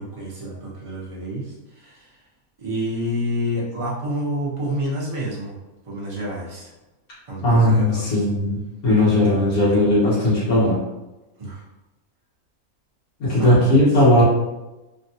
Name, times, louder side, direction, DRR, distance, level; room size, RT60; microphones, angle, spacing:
voice 1, 0.0-2.2 2.6-5.6 5.8-6.7 7.3-8.3 11.4-11.6 13.3-14.0, equal, 30° right, -5 dB, 0.6 m, -29 dB
voice 2, 7.4-10.8 13.2-14.2, left 1 dB, 90° left, -10 dB, 1.6 m, -17 dB
3.4 x 2.2 x 2.7 m, 1.1 s
omnidirectional pair, 1.5 m